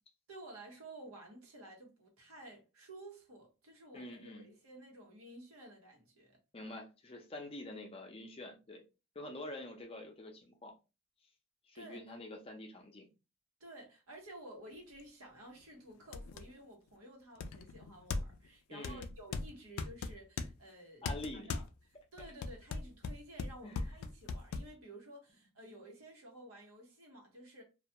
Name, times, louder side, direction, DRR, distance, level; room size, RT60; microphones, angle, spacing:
voice 1, 0.3-6.4 11.7-12.0 13.6-21.1 21.3-21.6 22.1-27.6, right 1 dB, 90° right, 0.9 m, -53 dB
voice 2, 3.9-4.5 6.5-8.8 9.1-10.7 11.6-13.1 18.7-19.1 21.0-21.6 23.6-23.9, left 1 dB, 25° left, 0.5 m, -46 dB
sound 1, 15.0-15.1 15.6-15.7 16.1-16.5 17.4-18.5 18.8-20.5 21.0-21.7 22.2-24.7, left 4 dB, 85° left, 0.3 m, -39 dB
2.3 x 2.2 x 2.8 m
head